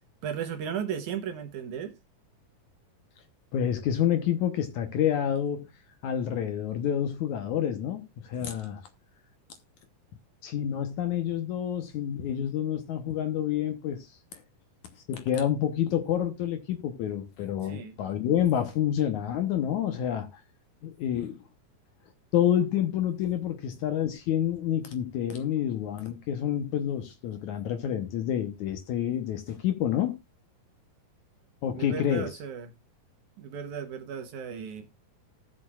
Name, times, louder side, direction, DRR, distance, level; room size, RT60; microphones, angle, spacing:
voice 1, 0.2-2.0 17.6-18.0 31.7-32.7 33.4-34.9, right 8 dB, 70° right, 2.1 m, -35 dB
voice 2, 3.5-5.7 6.0-8.8 10.4-14.4 15.1-20.3 20.8-21.4 22.3-30.2 31.6-32.3, left 10 dB, 70° left, 2.0 m, -28 dB
18.5 x 6.9 x 2.3 m
omnidirectional pair, 4.2 m